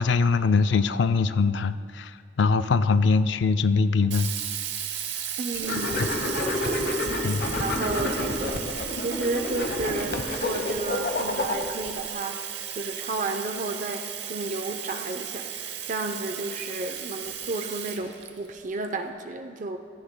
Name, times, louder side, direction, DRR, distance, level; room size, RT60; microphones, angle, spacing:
voice 1, 0.0-4.3 7.2-7.4, left 4 dB, 75° left, 12 dB, 0.4 m, -22 dB
Sink (filling or washing), 4.1-18.9, right 9 dB, 75° right, 0.8 m, -35 dB
voice 2, 5.4-7.3 7.6-8.6 9.0-12.5 12.8-14.0 14.3-19.8, right 2 dB, 45° right, 6 dB, 0.6 m, -32 dB
sound 1, 5.6-11.9, left 2 dB, 60° left, 1.1 m, -29 dB
16.5 x 14.5 x 2.2 m, 2.2 s
head